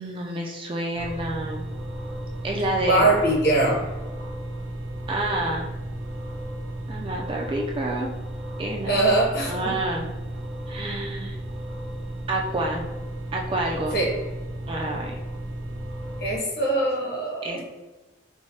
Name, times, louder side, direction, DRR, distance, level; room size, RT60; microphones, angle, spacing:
voice 1, 0.0-1.7 2.4-3.1 5.1-5.7 6.9-8.1 8.6-9.0 9.5-10.1 10.7-11.4 12.3-12.8 13.3-14.0 14.7-15.1 17.4-17.6, right 1 dB, 25° right, 0 dB, 0.3 m, -28 dB
sound 1, 1.0-16.4, right 1 dB, 75° right, 0.6 m, -34 dB
voice 2, 2.8-3.8 8.9-9.7 13.9-14.1 16.2-17.6, right 2 dB, 55° left, -3 dB, 1.0 m, -22 dB
4.7 x 2.1 x 2.7 m, 1.1 s
head